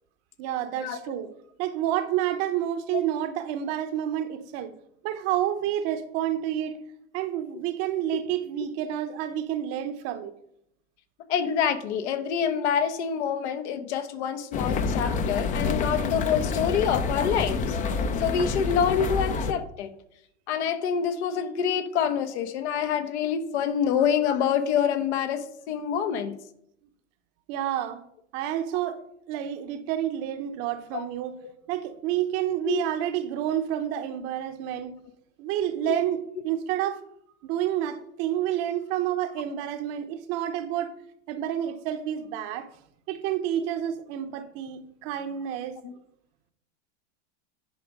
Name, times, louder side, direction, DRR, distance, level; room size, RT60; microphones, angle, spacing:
voice 1, 0.4-1.3 1.6-4.7 5.0-6.7 7.1-10.3 27.5-28.0 28.3-29.0 29.3-31.4 31.7-34.9 35.4-37.0 37.4-40.9 41.3-42.7 43.1-45.8, right 11 dB, 45° right, 0.9 m, -29 dB
voice 2, 11.3-17.7 18.2-19.9 20.5-26.4 30.9-31.0 31.4-31.5 32.6-32.8 35.8-36.0 45.8-45.9, left 8 dB, 70° left, 1.2 m, -26 dB
sound 1, 14.5-19.5, left 4 dB, 20° left, 0.6 m, -28 dB
10.0 x 4.8 x 5.3 m
supercardioid pair, 135°, 35 cm